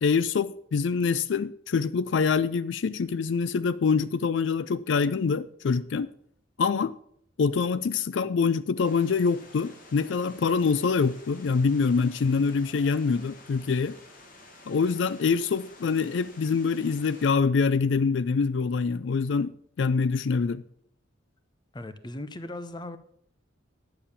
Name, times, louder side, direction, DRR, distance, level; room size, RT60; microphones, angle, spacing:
voice 1, 0.0-6.1 6.6-6.9 7.4-14.0 14.7-20.6, left 5 dB, 65° left, 0.4 m, -25 dB
sound 1, 8.8-17.3, left 2 dB, 45° left, 2.0 m, -51 dB
voice 2, 21.7-23.0, left 1 dB, 20° left, 0.7 m, -38 dB
10.0 x 7.0 x 7.0 m
head